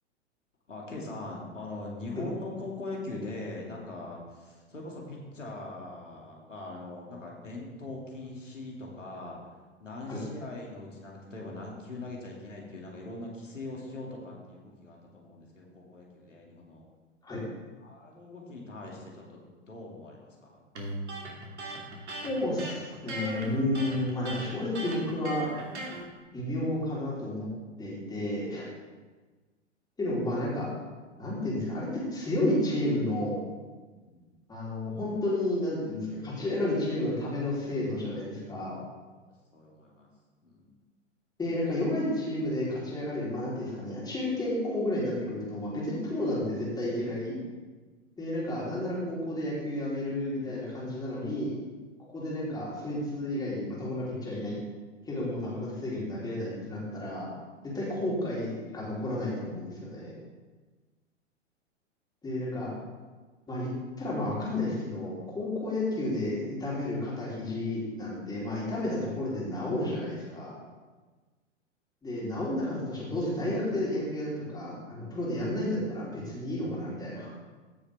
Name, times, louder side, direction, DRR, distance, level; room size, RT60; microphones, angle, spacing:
voice 1, 0.7-9.4 9.8-16.9 17.8-20.6 33.8-34.3 39.5-40.1 40.4-40.8, left 2 dB, 80° left, -2 dB, 2.4 m, -41 dB
Electric guitar, 20.7-26.0, right 1 dB, 65° right, 2.7 m, -38 dB
voice 2, 22.2-25.5 26.3-27.5 27.8-28.7 30.0-30.7 31.2-33.4 34.5-38.8 41.4-47.4 48.2-51.6 52.1-54.6 55.0-57.3 57.6-60.2 62.2-62.7 63.5-63.7 64.0-70.5 72.0-77.3, left 1 dB, 10° left, -6 dB, 3.5 m, -31 dB
15.0 x 6.7 x 3.4 m, 1.3 s
figure-of-eight pair, 100°, 37 cm